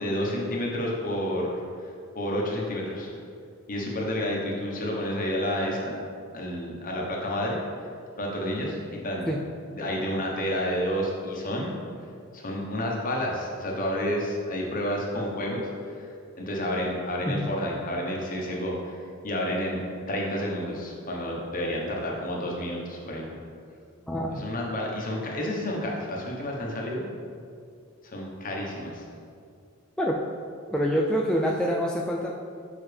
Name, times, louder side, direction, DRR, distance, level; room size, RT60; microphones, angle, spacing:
voice 1, 0.0-1.9 2.1-3.1 3.7-6.0 6.3-7.6 8.2-9.3 9.7-11.7 12.3-16.1 16.4-19.0 19.2-19.8 20.1-23.4 24.3-27.1 28.0-29.0, equal, 40° left, -2 dB, 1.1 m, -30 dB
voice 2, 24.1-24.5 30.0-30.2 30.7-32.3, equal, 5° left, -3 dB, 0.3 m, -26 dB
6.9 x 5.4 x 3.4 m, 2.3 s
head